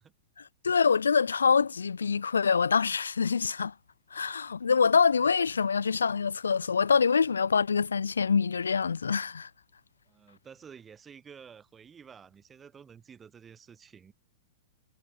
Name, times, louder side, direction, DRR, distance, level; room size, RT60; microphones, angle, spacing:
voice 1, 0.6-3.7 4.1-9.5, left 5 dB, 85° left, 0.4 m, -25 dB
voice 2, 10.1-14.1, right 7 dB, 20° right, 3.1 m, -51 dB
hypercardioid pair, 110°, 0 cm